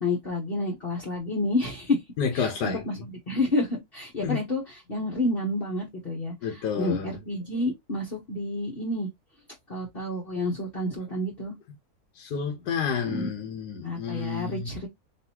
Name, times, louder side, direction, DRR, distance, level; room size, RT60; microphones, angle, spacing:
voice 1, 0.0-2.0 2.3-9.1 9.7-11.5 13.1-13.3 13.8-14.9, left 2 dB, 40° left, 1.2 m, -29 dB
voice 2, 2.2-2.8 4.2-4.4 6.4-7.1 12.2-14.7, left 6 dB, 85° left, 1.5 m, -30 dB
4.0 x 3.3 x 2.8 m
omnidirectional pair, 1.7 m